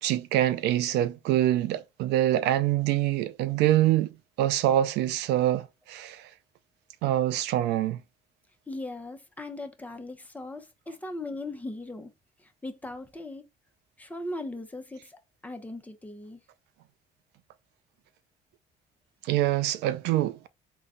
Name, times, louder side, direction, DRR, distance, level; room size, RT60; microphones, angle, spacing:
voice 1, 0.0-4.1 4.4-6.3 7.0-8.0 19.2-20.5, right 13 dB, 85° right, 0.4 m, -25 dB
voice 2, 8.7-12.1 12.4-13.4 14.0-16.4, left 2 dB, 10° left, 0.7 m, -39 dB
3.9 x 2.2 x 3.7 m
cardioid pair, 110°, 17 cm